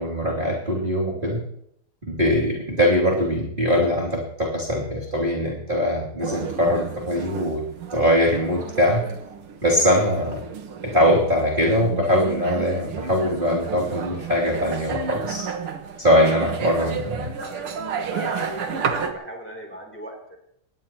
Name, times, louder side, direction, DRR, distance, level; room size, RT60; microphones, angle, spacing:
voice 1, 0.0-1.4 2.0-7.6 7.9-9.0 9.6-10.4 10.8-15.5 16.0-17.3, equal, 20° right, -5 dB, 3.1 m, -22 dB
sound 1, 6.2-19.1, right 6 dB, 85° right, 2.4 m, -32 dB
voice 2, 16.8-20.4, right 1 dB, 5° left, 1 dB, 3.4 m, -37 dB
23.5 x 18.5 x 3.0 m, 0.72 s
omnidirectional pair, 2.4 m